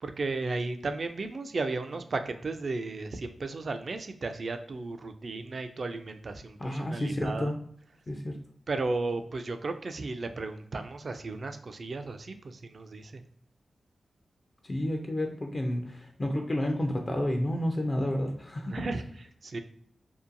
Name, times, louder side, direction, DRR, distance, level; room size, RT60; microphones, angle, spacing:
voice 1, 0.0-7.5 8.7-13.2 18.7-19.0 19.4-19.6, right 3 dB, 55° right, 8 dB, 0.3 m, -34 dB
voice 2, 6.6-7.6 8.1-8.4 14.7-18.8, left 1 dB, 35° left, 2 dB, 0.4 m, -30 dB
2.7 x 2.2 x 2.5 m, 0.63 s
cardioid pair, 70°, 0 cm